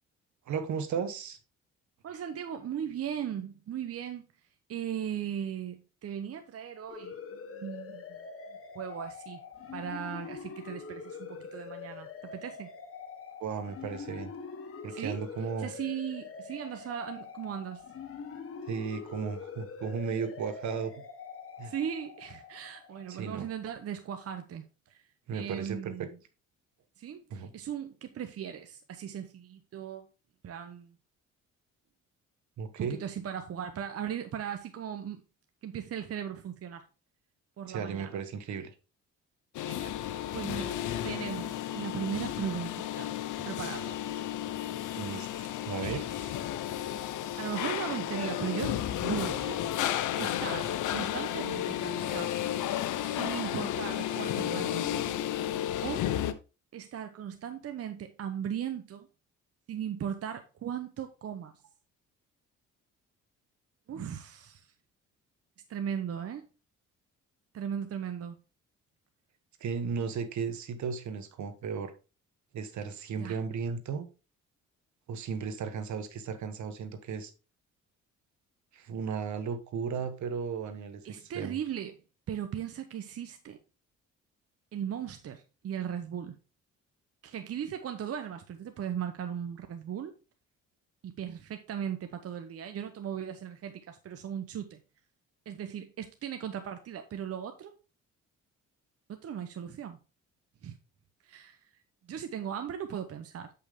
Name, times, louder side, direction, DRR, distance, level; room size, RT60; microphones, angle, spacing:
voice 1, 0.5-1.4 13.4-14.3 14.8-15.7 18.7-20.9 21.6-21.7 23.1-23.5 25.3-26.1 27.3-27.5 32.6-33.0 37.7-38.7 45.0-46.0 69.6-71.9 72.5-74.1 75.1-77.3 78.7-81.0 81.3-81.6, right 6 dB, 70° right, 1.3 m, -35 dB
voice 2, 2.0-4.3 4.7-8.2 8.7-9.4 9.7-12.7 14.9-15.2 15.6-17.9 21.6-25.1 25.3-26.2 27.0-30.1 30.4-30.9 32.8-35.2 35.6-36.8 37.6-38.2 39.7-43.1 43.4-44.0 44.5-44.7 45.8-46.0 47.4-49.6 50.2-52.4 53.0-55.0 55.8-56.1 56.7-59.1 59.7-61.5 63.9-64.7 65.7-66.4 67.5-68.4 73.2-73.4 81.0-81.9 82.3-83.6 84.7-86.4 87.2-90.1 91.0-94.8 95.5-97.7 99.1-100.0 100.6-100.8 101.2-101.7 102.0-103.5, right 9 dB, 50° right, 0.8 m, -38 dB
sound 1, 6.9-23.3, left 5 dB, 50° left, 1.4 m, -44 dB
sound 2, 39.5-56.3, left 11 dB, 80° left, 0.8 m, -33 dB
8.1 x 5.6 x 3.6 m
cardioid pair, 90°, 30 cm